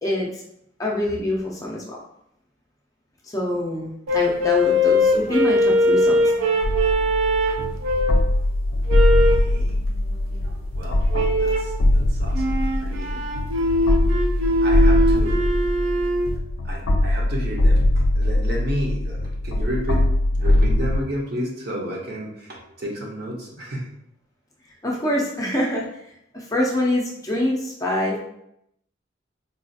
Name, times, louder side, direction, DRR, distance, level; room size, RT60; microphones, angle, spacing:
voice 1, 0.0-0.4 0.8-2.0 3.2-6.3 24.8-25.8 26.3-28.2, left 1 dB, 15° left, -3 dB, 0.4 m, -25 dB
sound 1, 4.1-8.3 8.9-9.5 11.1-11.8 12.3-16.3, left 1 dB, 80° right, 0.4 m, -21 dB
sound 2, 6.6-21.0, left 1 dB, 75° left, 0.4 m, -21 dB
voice 2, 9.3-9.8 10.7-11.0 11.3-13.2 14.6-15.4 16.6-20.1 20.3-23.9, equal, 50° right, -2 dB, 0.8 m, -32 dB
4.0 x 2.4 x 2.6 m, 0.78 s
head